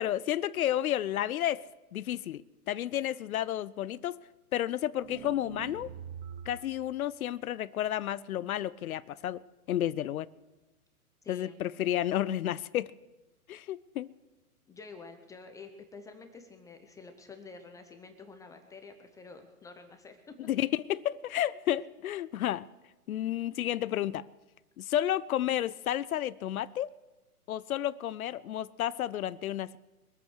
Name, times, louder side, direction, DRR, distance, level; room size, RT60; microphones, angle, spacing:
voice 1, 0.0-2.4 2.7-4.2 4.5-5.9 6.5-9.4 9.7-10.3 11.3-12.9 13.5-14.1 20.5-22.7 23.1-24.3 24.8-26.9 27.5-29.8, left 12 dB, 70° left, 0.6 m, -31 dB
sound 1, 4.9-6.8, right 8 dB, 45° right, 1.5 m, -44 dB
voice 2, 11.2-11.6 14.7-20.3, left 4 dB, 5° left, 0.6 m, -49 dB
23.0 x 8.2 x 6.4 m
hypercardioid pair, 130°, 45 cm